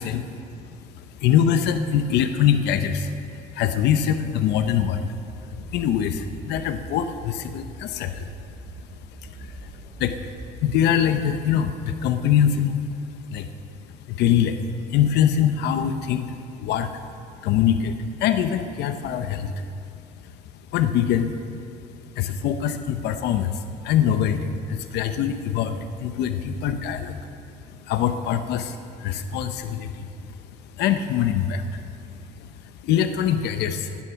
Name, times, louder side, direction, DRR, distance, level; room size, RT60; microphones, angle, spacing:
voice 1, 0.0-8.3 9.2-13.5 13.9-14.6 14.9-17.0 17.4-19.6 20.2-20.3 20.7-21.3 22.1-27.3 27.7-30.4 30.6-31.9 32.4-34.0, left 9 dB, 80° left, 9 dB, 0.8 m, -24 dB
sound 1, 4.7-12.3, right 2 dB, 45° right, 2.3 m, -43 dB
16.5 x 12.0 x 5.8 m, 2.4 s
cardioid pair, 110°, 17 cm